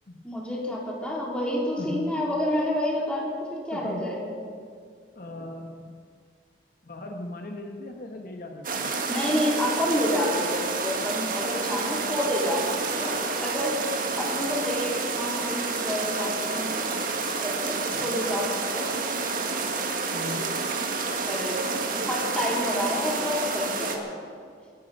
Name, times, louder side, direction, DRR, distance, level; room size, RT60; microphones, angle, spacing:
voice 1, 0.2-4.3 9.1-13.8 14.2-17.1 17.4-18.5 18.7-19.2 21.3-24.1, left 1 dB, 5° left, -3 dB, 3.3 m, -29 dB
voice 2, 1.8-2.2 3.7-4.1 5.1-6.0 6.8-8.9 17.9-18.3 20.1-20.6, left 1 dB, 55° left, 3 dB, 1.2 m, -38 dB
sound 1, 8.6-24.0, right 4 dB, 50° right, 1.7 m, -29 dB
23.5 x 10.5 x 5.4 m, 2.1 s
head